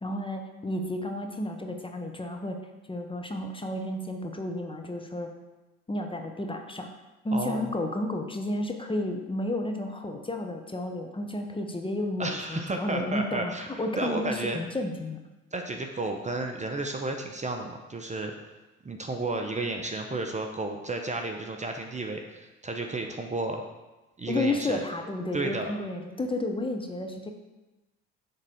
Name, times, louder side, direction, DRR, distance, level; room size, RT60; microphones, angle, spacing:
voice 1, 0.0-2.6 2.9-5.3 5.9-6.9 7.2-15.2 24.3-27.3, left 1 dB, 15° left, 4 dB, 0.8 m, -32 dB
voice 2, 7.3-7.7 12.2-13.7 14.0-14.6 15.5-18.3 18.8-23.6 24.2-24.8 25.3-25.7, right 2 dB, 20° right, 4 dB, 0.7 m, -32 dB
6.6 x 3.7 x 6.2 m, 1.1 s
hypercardioid pair, 55°, 37 cm